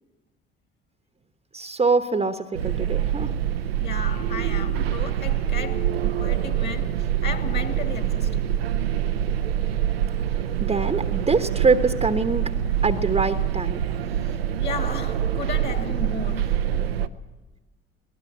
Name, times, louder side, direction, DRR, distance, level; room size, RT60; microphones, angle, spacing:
voice 1, 1.5-3.3 10.7-12.4 12.8-13.8, right 4 dB, 20° right, 1.2 m, -23 dB
sound 1, 2.5-17.1, right 10 dB, 75° right, 0.8 m, -25 dB
voice 2, 3.8-8.5 14.1-16.8, left 6 dB, 35° left, 2.1 m, -35 dB
22.5 x 19.5 x 8.7 m
figure-of-eight pair, 55°, 30 cm